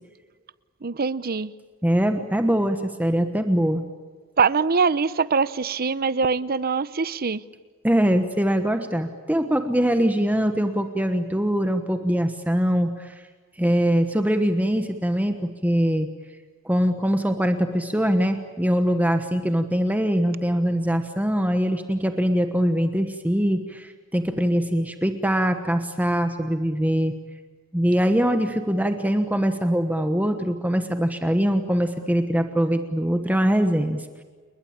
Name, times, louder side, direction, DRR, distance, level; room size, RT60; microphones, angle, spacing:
voice 1, 0.8-1.5 4.4-7.4, right 5 dB, 45° right, 17 dB, 0.8 m, -23 dB
voice 2, 1.8-3.8 7.8-13.2 13.6-16.1 16.6-27.1 27.7-34.0, equal, 10° right, 7 dB, 1.2 m, -22 dB
29.5 x 21.5 x 8.8 m, 1.4 s
head